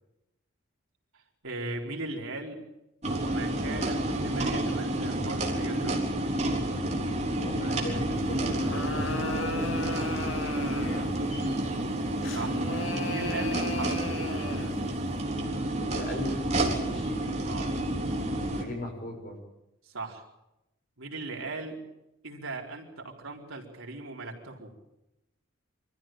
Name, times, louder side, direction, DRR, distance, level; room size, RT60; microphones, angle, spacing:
voice 1, 1.4-2.6 3.2-6.2 12.3-12.6 13.1-14.3 17.4-17.8 19.9-20.2 21.0-21.8 22.2-24.7, right 2 dB, 85° right, 0 dB, 4.4 m, -38 dB
sound 1, 3.0-18.6, right 1 dB, 35° right, 3.9 m, -30 dB
voice 2, 7.4-11.1 15.8-17.2 18.5-19.4, left 1 dB, 45° left, 2 dB, 6.5 m, -39 dB
sound 2, 8.4-11.2 12.2-14.8, left 3 dB, 70° left, 2.0 m, -36 dB
24.5 x 15.0 x 9.0 m, 0.92 s
head